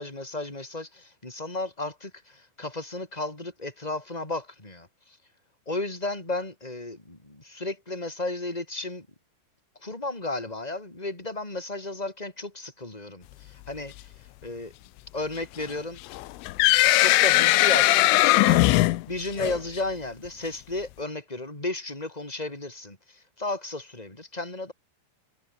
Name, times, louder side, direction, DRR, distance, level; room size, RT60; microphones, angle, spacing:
voice 1, 0.0-5.2 5.7-9.1 9.8-14.1 14.4-14.7 15.1-16.0 17.0-18.6 19.1-24.7, left 2 dB, 10° left, 5.3 m, -34 dB
sound 1, 16.1-19.8, left 18 dB, 80° left, 3.5 m, -19 dB
omnidirectional pair, 5.9 m